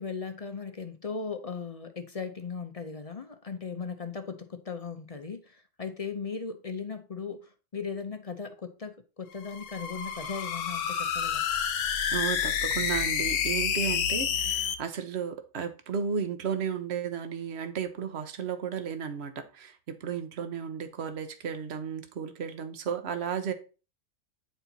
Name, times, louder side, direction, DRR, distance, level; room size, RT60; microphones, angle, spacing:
voice 1, 0.0-11.4, left 5 dB, 40° left, 0.5 m, -37 dB
sound 1, 9.3-14.8, left 8 dB, 75° left, 1.1 m, -29 dB
voice 2, 12.1-23.5, right 7 dB, 55° right, 1.1 m, -34 dB
9.1 x 4.3 x 4.0 m
omnidirectional pair, 1.3 m